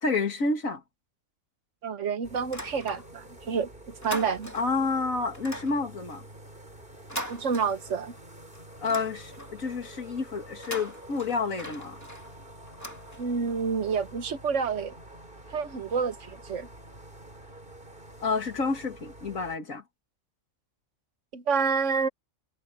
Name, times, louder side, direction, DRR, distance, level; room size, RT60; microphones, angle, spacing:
voice 1, 0.0-0.8 4.5-6.2 8.8-12.0 18.2-19.8, left 4 dB, 80° left, 2.5 m, -29 dB
voice 2, 1.8-3.7 4.0-4.5 7.3-8.1 13.2-14.9 15.5-16.7 21.3-22.1, right 5 dB, 65° right, 1.4 m, -28 dB
sound 1, 2.2-19.6, right 1 dB, 40° right, 4.9 m, -48 dB
sound 2, 2.5-3.4 3.7-4.8 5.3-8.2 8.5-9.7 10.5-13.6, equal, 10° left, 2.5 m, -41 dB
omnidirectional pair, 1.4 m